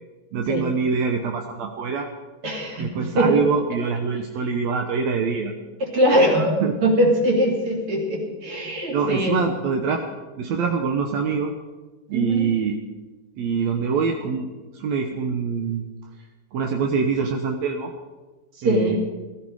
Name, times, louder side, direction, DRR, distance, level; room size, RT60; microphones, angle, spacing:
voice 1, 0.3-2.1 2.8-5.5 6.6-6.7 8.9-10.0 10.4-11.5 12.1-12.8 13.4-14.5 14.8-15.8 16.5-17.9 18.6-19.0, right 5 dB, 65° right, 3 dB, 1.8 m, -24 dB
voice 2, 2.4-3.4 5.8-9.4 12.1-12.5 18.6-19.0, equal, 40° right, 0 dB, 3.5 m, -21 dB
18.0 x 15.0 x 4.8 m, 1.2 s
omnidirectional pair, 4.2 m